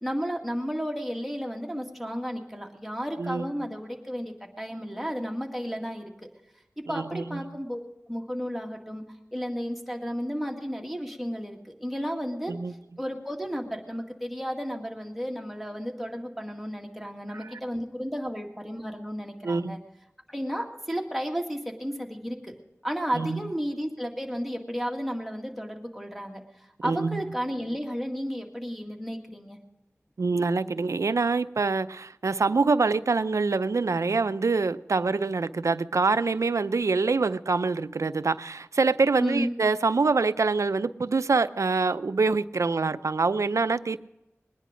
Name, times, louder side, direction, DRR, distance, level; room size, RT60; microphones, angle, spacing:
voice 1, 0.0-6.3 6.9-7.8 8.1-9.0 9.3-12.5 13.0-19.8 20.3-22.5 22.8-29.6 39.2-39.5, equal, ahead, 2.0 m, -33 dB
voice 2, 6.9-7.4 12.5-12.7 17.4-17.5 19.4-19.8 23.1-23.4 26.8-27.2 30.2-44.0, right 4 dB, 90° right, 0.4 m, -25 dB
21.0 x 10.0 x 5.1 m
wide cardioid pair, 55°, 5 cm